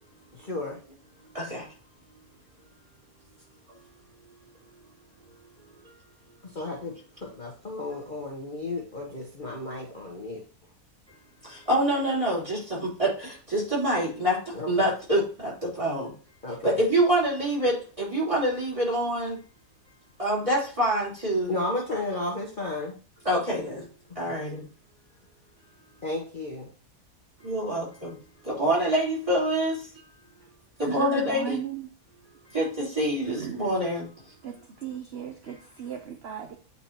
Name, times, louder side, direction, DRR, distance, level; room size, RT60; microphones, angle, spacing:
voice 1, 0.3-0.8 6.5-10.4 14.6-14.7 16.4-16.7 21.5-22.9 24.3-24.4 26.0-26.7, left 2 dB, 35° left, -2 dB, 1.2 m, -33 dB
voice 2, 11.7-13.1 13.5-14.4 14.7-15.5 15.8-16.1 16.6-19.4 20.2-21.5 23.3-23.8 24.2-24.6 27.4-28.1 28.5-29.8 30.8-31.6 32.5-34.0, right 1 dB, 20° right, -5 dB, 3.7 m, -25 dB
voice 3, 30.8-31.9 33.4-33.6 34.4-36.6, right 8 dB, 50° right, 4 dB, 0.9 m, -36 dB
8.9 x 4.3 x 2.9 m, 0.37 s
omnidirectional pair, 1.6 m